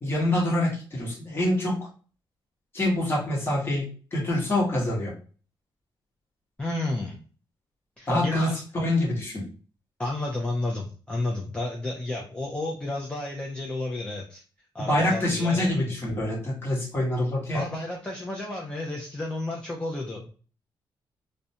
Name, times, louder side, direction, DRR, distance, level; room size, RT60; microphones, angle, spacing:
voice 1, 0.0-1.8 2.7-5.1 8.1-9.5 14.8-17.6, left 1 dB, 30° left, -2 dB, 1.0 m, -26 dB
voice 2, 6.6-7.2 8.0-8.5 10.0-14.4 14.7-15.7 17.5-20.3, left 2 dB, 10° left, -2 dB, 0.4 m, -31 dB
2.4 x 2.1 x 2.7 m, 0.38 s
cardioid pair, 130°, 9 cm